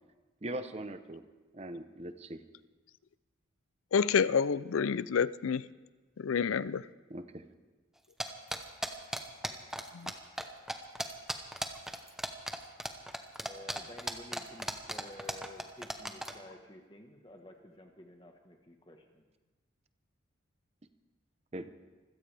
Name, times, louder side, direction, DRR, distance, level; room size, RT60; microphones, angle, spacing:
voice 1, 0.4-1.2 1.5-2.4 7.1-7.5 21.5-21.7, right 1 dB, 30° right, 9 dB, 0.8 m, -40 dB
voice 2, 3.9-5.6 6.2-6.9 9.9-10.1, left 6 dB, 85° left, 18 dB, 0.5 m, -28 dB
sound 1, 8.2-10.1 10.4-10.5 10.7-16.3, equal, ahead, 0.9 m, -35 dB
voice 3, 13.4-19.2, left 1 dB, 25° left, 4 dB, 1.3 m, -51 dB
26.0 x 16.0 x 3.4 m, 1.3 s
head